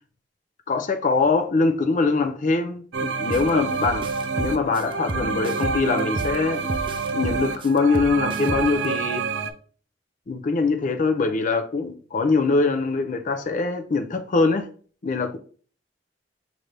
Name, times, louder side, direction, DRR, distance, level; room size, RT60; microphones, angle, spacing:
voice 1, 0.7-4.1 4.4-6.7 7.1-9.3 10.3-14.7 15.0-15.4, left 3 dB, 45° left, 0.5 m, -23 dB
sound 1, 2.9-9.5, right 4 dB, 80° right, 0.5 m, -28 dB
sound 2, 3.3-3.5 3.8-6.4 6.7-8.9, right 2 dB, 30° right, 0.4 m, -31 dB
5.8 x 2.6 x 3.3 m
head